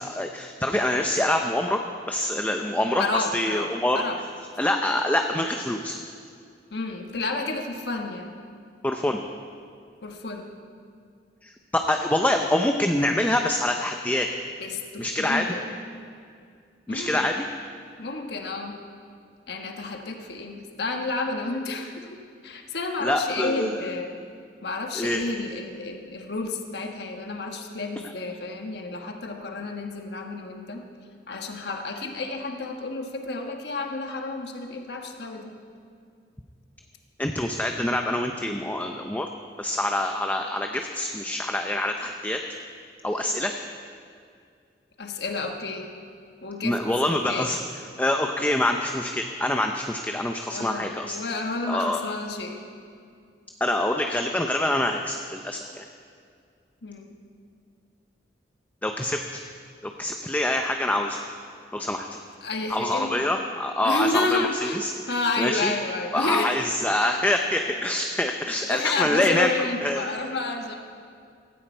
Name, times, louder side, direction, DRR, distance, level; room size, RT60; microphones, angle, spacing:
voice 1, 0.0-1.8 2.1-4.0 4.6-6.0 8.8-9.2 11.4-14.3 15.0-15.4 16.9-17.5 23.0-23.8 24.9-25.2 37.2-39.3 39.6-42.4 43.0-43.5 46.6-47.6 48.0-51.2 51.7-52.0 53.6-55.8 58.8-59.4 59.8-61.2 61.7-62.1 62.7-64.9 65.4-65.7 66.1-69.5 69.8-70.1, left 1 dB, 10° left, 4 dB, 0.6 m, -25 dB
voice 2, 3.0-4.2 6.7-8.3 10.0-10.5 14.6-15.7 16.9-17.3 18.0-18.8 19.5-24.1 24.6-30.8 31.3-35.6 45.0-45.9 46.4-47.5 50.5-52.6 56.8-57.0 62.4-63.1 63.8-67.0 68.6-70.8, left 3 dB, 70° left, 3 dB, 1.3 m, -31 dB
16.5 x 14.5 x 4.5 m, 2.3 s
head